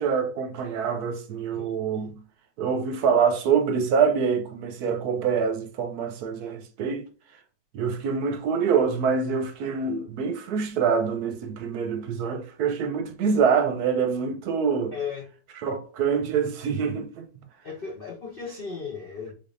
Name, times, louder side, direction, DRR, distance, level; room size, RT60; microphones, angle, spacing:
voice 1, 0.0-2.2 2.6-7.1 7.7-14.9 15.6-17.3, right 6 dB, 70° right, 1.0 m, -25 dB
voice 2, 14.9-15.3 17.6-19.3, left 6 dB, 60° left, 0.5 m, -35 dB
3.8 x 3.5 x 2.5 m
omnidirectional pair, 1.8 m